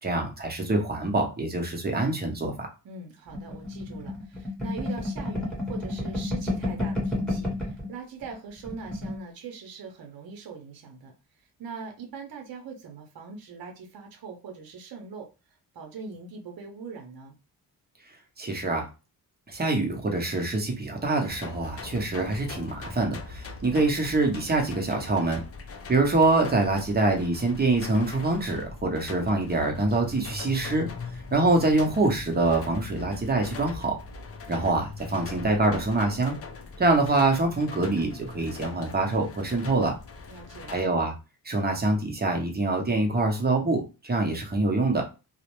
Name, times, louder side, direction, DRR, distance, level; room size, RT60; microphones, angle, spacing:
voice 1, 0.0-2.7 18.4-18.9 19.5-25.4 25.9-30.9 31.1-33.9 34.5-36.4 36.8-39.9 40.7-41.1 41.4-45.0, right 2 dB, 25° right, 2 dB, 0.6 m, -25 dB
voice 2, 2.8-17.4 40.3-40.8, right 5 dB, 60° right, 3 dB, 0.7 m, -42 dB
sound 1, 3.3-7.9 8.2-8.3 8.6-9.2, left 1 dB, ahead, 0.9 m, -30 dB
sound 2, 21.3-40.8, left 4 dB, 35° left, 0.4 m, -41 dB
2.4 x 2.1 x 2.9 m, 0.29 s
wide cardioid pair, 125°, 41 cm